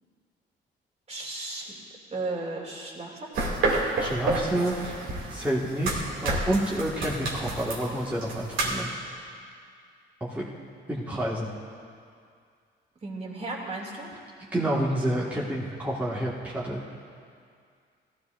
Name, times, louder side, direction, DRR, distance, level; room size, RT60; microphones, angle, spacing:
voice 1, 1.1-1.8 2.1-3.3 13.0-14.1, right 2 dB, 30° right, -2 dB, 2.6 m, -35 dB
sound 1, 3.3-8.8, right 2 dB, 80° right, 2.4 m, -30 dB
voice 2, 4.0-5.0 5.3-8.9 10.2-10.5 10.9-11.5 14.5-16.8, right 1 dB, 10° right, -7 dB, 1.7 m, -29 dB
16.5 x 14.0 x 2.6 m, 2.2 s
cardioid pair, 90°, 20 cm